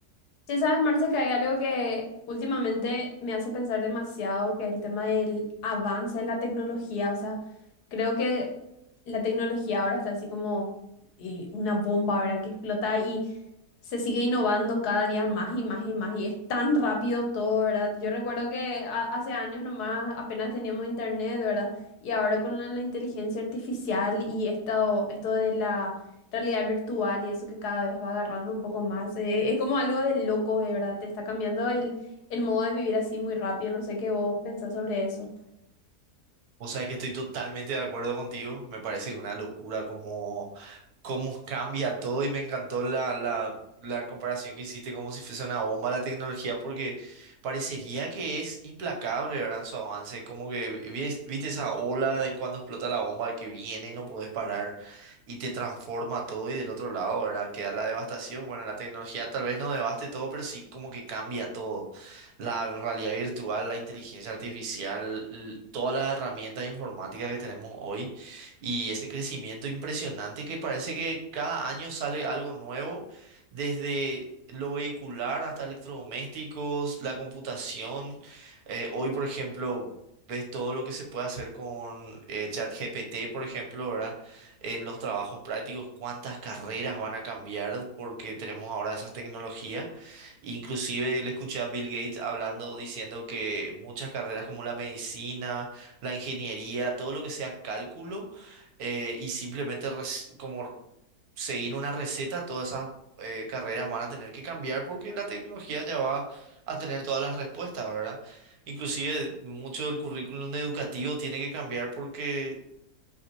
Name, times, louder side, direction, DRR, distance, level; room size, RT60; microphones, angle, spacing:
voice 1, 0.5-7.4 7.9-8.5 9.1-10.7 11.2-13.3 13.9-21.7 22.0-26.0 26.3-31.9 32.3-35.3, left 2 dB, 75° left, 2 dB, 1.4 m, -28 dB
voice 2, 36.6-43.5 43.8-79.9 80.3-100.7 101.4-102.9 103.2-112.6, right 3 dB, 70° right, 1 dB, 1.3 m, -33 dB
5.3 x 3.3 x 2.9 m, 0.82 s
omnidirectional pair, 1.7 m